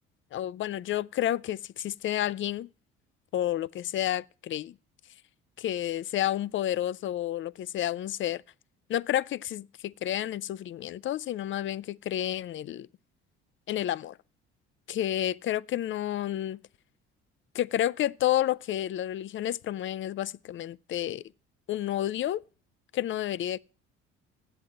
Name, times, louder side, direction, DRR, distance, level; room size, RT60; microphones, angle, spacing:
voice 1, 0.3-2.7 3.3-4.7 5.6-8.4 8.9-12.9 13.7-14.2 14.9-16.6 17.5-21.2 21.7-22.4 22.9-23.6, left 12 dB, 45° left, 0.4 m, -30 dB
7.9 x 7.8 x 7.3 m
hypercardioid pair, 60°, 29 cm